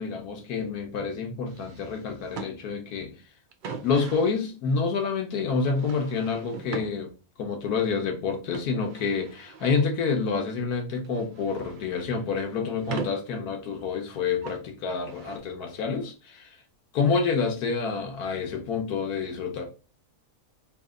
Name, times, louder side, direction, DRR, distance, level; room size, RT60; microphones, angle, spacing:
voice 1, 0.0-3.2 3.8-7.1 7.4-16.6 16.9-19.6, left 5 dB, 90° left, 1.4 m, -28 dB
sound 1, 1.5-2.5 3.5-4.4 5.7-6.9 8.5-9.9 10.8-12.0 12.3-13.2 14.4-14.6 15.0-15.4, right 5 dB, 90° right, 0.4 m, -39 dB
3.4 x 2.8 x 3.7 m
omnidirectional pair, 1.6 m